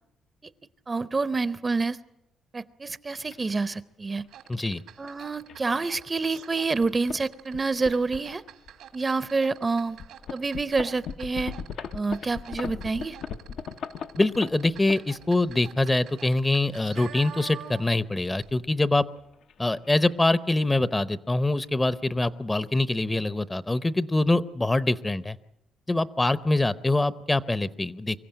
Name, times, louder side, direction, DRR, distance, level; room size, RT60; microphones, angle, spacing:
voice 1, 0.9-2.0 2.5-4.2 5.0-8.4 8.9-10.0 10.3-11.5 11.9-13.2, right 3 dB, 25° right, 15 dB, 0.7 m, -27 dB
sound 1, 3.3-3.4 4.2-4.5 5.0-5.1 5.5-5.6 6.3-6.5 6.8-7.2 7.5-8.8 9.3-9.4 10.0-15.5 16.4-17.3 19.0-20.1 20.4-20.7 20.9-21.0 21.3-21.8, left 6 dB, 70° left, 1.0 m, -38 dB
sound 2, 4.3-18.1 18.3-18.5, right 9 dB, 85° right, 1.9 m, -47 dB
voice 2, 4.5-4.8 14.2-19.1 19.6-25.4 25.9-28.3, left 2 dB, 15° left, 15 dB, 0.7 m, -24 dB
24.5 x 15.5 x 8.9 m, 0.88 s
cardioid pair, 90°, 0 cm